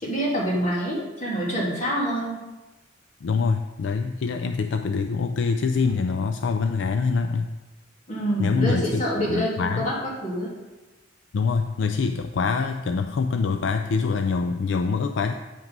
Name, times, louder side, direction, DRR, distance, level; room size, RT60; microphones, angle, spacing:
voice 1, 0.0-2.4 8.1-10.5, equal, 40° left, -4 dB, 2.6 m, -26 dB
voice 2, 3.2-7.4 8.4-9.0 9.3-9.9 11.3-15.3, left 4 dB, 70° left, 7 dB, 0.4 m, -24 dB
9.2 x 6.0 x 5.3 m, 1.2 s
head